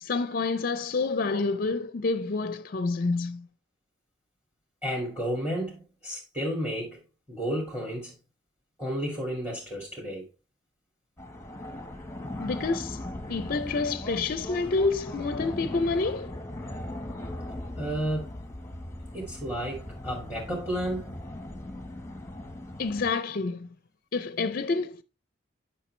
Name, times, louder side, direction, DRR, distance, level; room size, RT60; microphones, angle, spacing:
voice 1, 0.0-3.5 12.4-13.0 13.3-16.4 22.8-23.7 24.1-25.0, left 3 dB, 50° left, 0.5 m, -28 dB
voice 2, 4.8-7.0 7.3-8.1 8.8-10.2 17.7-18.4 19.1-21.1, equal, 10° right, 2.3 m, -32 dB
sound 1, 11.2-23.1, left 1 dB, 15° left, 1.2 m, -39 dB
9.8 x 5.6 x 3.2 m
head